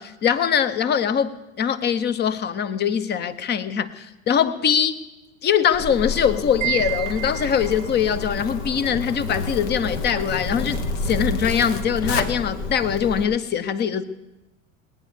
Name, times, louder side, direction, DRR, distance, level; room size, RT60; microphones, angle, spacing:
voice 1, 0.0-5.0 5.4-14.0, left 8 dB, 25° left, 15 dB, 0.9 m, -22 dB
Zipper (clothing), 5.7-13.2, left 3 dB, 60° left, 1.6 m, -29 dB
Wind chime, 6.6-8.0, right 20 dB, 60° right, 0.7 m, -29 dB
20.5 x 9.5 x 7.1 m, 1.0 s
figure-of-eight pair, 80°, 41 cm